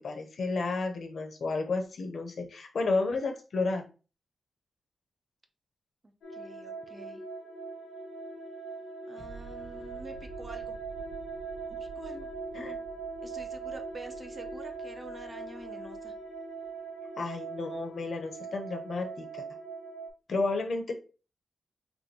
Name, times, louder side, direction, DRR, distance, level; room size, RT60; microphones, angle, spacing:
voice 1, 0.0-3.9 12.5-12.8 17.2-19.4 20.3-20.9, left 3 dB, 50° left, 5 dB, 0.8 m, -32 dB
voice 2, 6.0-7.2 9.1-10.8 11.8-12.3 13.2-16.1, right 2 dB, 20° right, 7 dB, 0.5 m, -47 dB
sound 1, 6.2-20.1, right 4 dB, 85° left, 1.1 m, -41 dB
sound 2, 9.2-16.7, right 4 dB, 75° right, 1.5 m, -51 dB
5.3 x 2.5 x 2.9 m, 0.34 s
wide cardioid pair, 180°, 0 cm